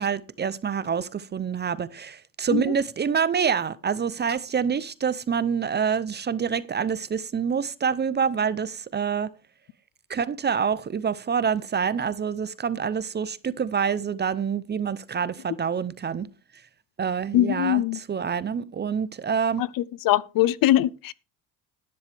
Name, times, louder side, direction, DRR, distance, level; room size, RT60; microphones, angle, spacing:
voice 1, 0.0-9.3 10.1-16.3 17.0-19.6, right 7 dB, 25° right, 0.6 m, -26 dB
voice 2, 17.3-18.0 19.6-19.7 20.0-21.1, left 14 dB, 55° left, 0.6 m, -21 dB
12.0 x 10.5 x 3.4 m
cardioid pair, 105°, 42 cm